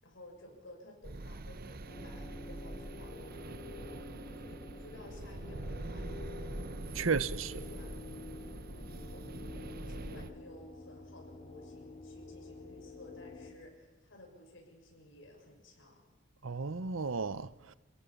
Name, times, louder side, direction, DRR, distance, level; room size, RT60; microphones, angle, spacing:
voice 1, 0.0-8.0 8.6-9.3 9.8-16.2, left 1 dB, 70° left, 6.5 m, -55 dB
sound 1, 1.0-10.3, right 2 dB, 50° right, 0.9 m, -44 dB
sound 2, 1.8-13.5, left 3 dB, 35° left, 3.0 m, -49 dB
voice 2, 6.9-7.6 16.4-17.7, right 5 dB, 80° right, 0.8 m, -34 dB
28.0 x 17.0 x 7.1 m
head